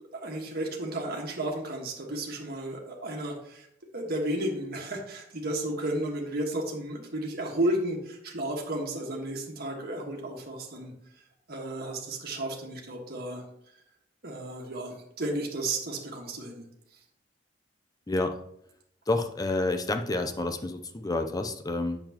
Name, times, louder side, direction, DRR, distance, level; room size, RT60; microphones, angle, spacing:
voice 1, 0.2-3.7 3.9-10.9 11.5-13.4 14.2-16.6, right 1 dB, 55° right, 0 dB, 1.5 m, -33 dB
voice 2, 18.1-18.4 19.1-22.0, left 2 dB, 20° left, 7 dB, 0.5 m, -29 dB
7.9 x 6.8 x 2.9 m, 0.75 s
head